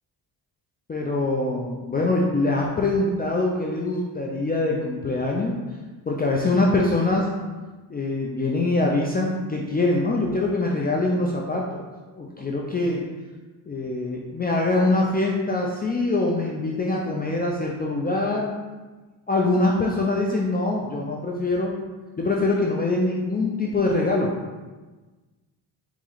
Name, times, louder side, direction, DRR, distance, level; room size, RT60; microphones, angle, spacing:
voice 1, 0.9-5.6 6.1-7.3 7.9-11.8 12.2-13.0 13.7-18.5 19.3-21.8 22.2-24.3, left 2 dB, 20° left, -2 dB, 0.5 m, -24 dB
4.2 x 3.0 x 3.9 m, 1.3 s
cardioid pair, 80°, 42 cm